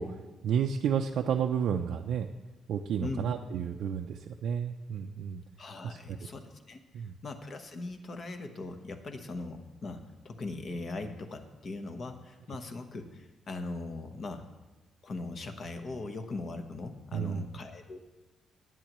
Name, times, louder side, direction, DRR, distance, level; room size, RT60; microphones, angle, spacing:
voice 1, 0.0-2.3 2.7-5.4 5.8-6.3 6.9-7.1 17.1-17.5, right 7 dB, 70° right, 3 dB, 0.5 m, -31 dB
voice 2, 5.6-6.8 7.2-14.5 15.0-18.0, left 3 dB, 40° left, 7 dB, 1.0 m, -40 dB
19.0 x 9.0 x 3.1 m, 1.1 s
cardioid pair, 160°, 0 cm